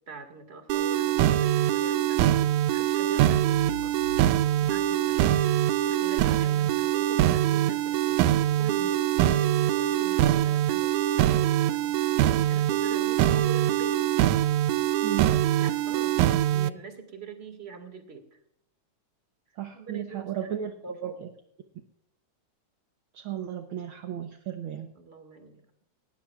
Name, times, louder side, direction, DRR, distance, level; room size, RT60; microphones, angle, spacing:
voice 1, 0.1-14.0 15.1-18.4 19.7-21.3 24.9-25.6, right 5 dB, 25° right, 6 dB, 1.8 m, -44 dB
sound 1, 0.7-16.7, right 12 dB, 85° right, 2.1 m, -23 dB
sound 2, 3.4-5.9, left 3 dB, 75° left, 2.4 m, -44 dB
voice 2, 15.0-15.3 19.6-20.7 21.0-21.3 23.1-24.9, right 10 dB, 65° right, 6 dB, 1.3 m, -34 dB
19.0 x 17.0 x 2.4 m, 0.72 s
omnidirectional pair, 3.4 m